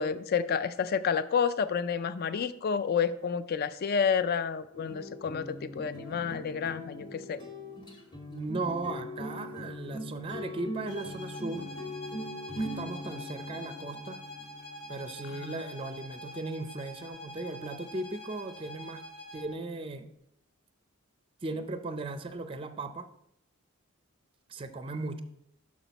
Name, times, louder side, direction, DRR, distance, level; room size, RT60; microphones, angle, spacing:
voice 1, 0.0-7.4 15.3-15.5, left 6 dB, 45° left, 14 dB, 0.3 m, -30 dB
sound 1, 4.7-15.7, left 1 dB, 20° left, 1.4 m, -41 dB
voice 2, 8.3-11.7 12.6-14.2 14.9-19.0 19.3-20.1 21.4-23.1 24.5-25.2, right 2 dB, 25° right, 9 dB, 0.4 m, -37 dB
sound 2, 10.9-19.6, left 1 dB, 80° left, 1.6 m, -45 dB
6.1 x 5.9 x 4.0 m, 0.75 s
head